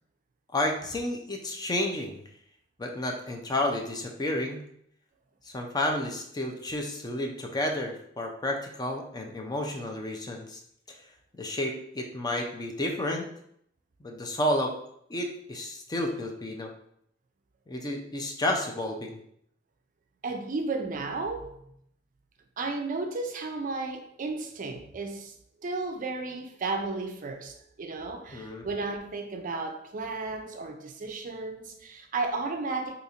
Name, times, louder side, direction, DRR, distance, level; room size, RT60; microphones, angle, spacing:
voice 1, 0.5-2.2 2.8-4.6 5.5-10.6 10.9-11.0 11.4-13.3 14.0-14.7 15.1-16.7 17.7-19.2 28.3-28.7, left 1 dB, 20° left, 2 dB, 0.4 m, -31 dB
voice 2, 20.2-21.6 22.6-25.3 25.6-33.0, right 3 dB, 45° right, 4 dB, 0.4 m, -33 dB
2.8 x 2.5 x 4.2 m, 0.70 s
head